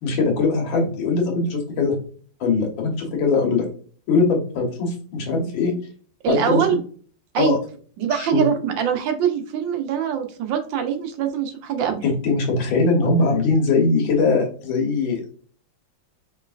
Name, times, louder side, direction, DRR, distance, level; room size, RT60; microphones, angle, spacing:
voice 1, 0.0-2.0 2.4-3.7 4.1-5.7 6.3-6.6 7.4-7.6 8.1-8.4 12.0-15.2, left 3 dB, 85° left, 1 dB, 2.0 m, -21 dB
voice 2, 6.2-6.8 7.3-7.6 8.0-12.0, right 8 dB, 75° right, 5 dB, 1.5 m, -23 dB
5.2 x 3.2 x 2.5 m, 0.42 s
omnidirectional pair, 2.1 m